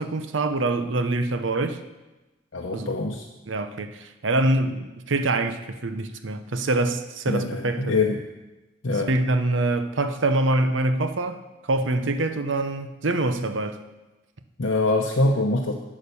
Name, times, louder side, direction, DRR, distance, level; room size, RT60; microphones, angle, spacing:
voice 1, 0.0-1.8 2.7-3.0 3.5-8.0 8.9-11.4 11.7-13.8, right 2 dB, 70° right, 0.8 m, -25 dB
voice 2, 2.5-3.2 7.3-8.2 8.8-9.1 14.6-15.7, left 2 dB, 70° left, 0.9 m, -24 dB
9.0 x 8.7 x 6.9 m
head